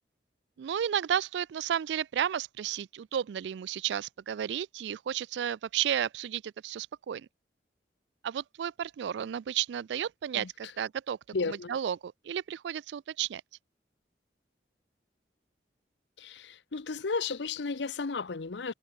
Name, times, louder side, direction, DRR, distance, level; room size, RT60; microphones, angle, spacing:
voice 1, 0.6-7.3 8.2-11.2 11.5-13.4, right 9 dB, 75° right, 0.3 m, -32 dB
voice 2, 10.3-10.7 11.3-11.8 16.2-18.7, left 4 dB, 80° left, 0.8 m, -34 dB
head